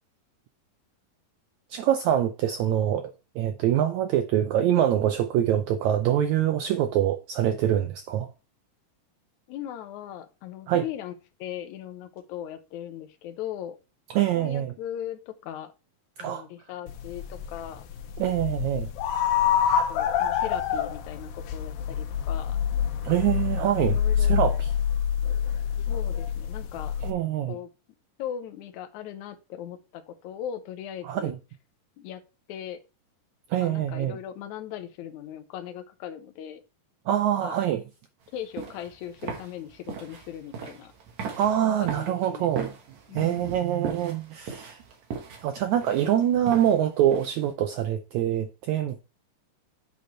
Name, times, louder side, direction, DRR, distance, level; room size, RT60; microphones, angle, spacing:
voice 1, 1.7-8.3 10.7-10.9 14.1-14.7 16.2-16.4 18.2-18.9 23.0-24.7 27.0-27.6 31.0-31.4 33.5-34.2 37.1-37.8 41.3-42.7 43.1-44.8 45.4-49.0, right 11 dB, 85° right, 1.6 m, -25 dB
voice 2, 9.5-11.1 11.4-13.8 14.2-15.7 16.2-17.8 19.9-22.6 23.8-24.6 25.9-26.9 27.5-27.7 28.2-31.3 32.0-32.2 32.5-32.8 33.6-36.6 37.4-37.6 38.3-40.9 41.7-42.5 43.1-43.6, left 10 dB, 70° left, 2.0 m, -38 dB
sound 1, 16.9-27.1, left 8 dB, 90° left, 2.6 m, -27 dB
sound 2, 38.3-47.5, right 6 dB, 60° right, 2.7 m, -39 dB
8.5 x 4.2 x 4.4 m
omnidirectional pair, 4.0 m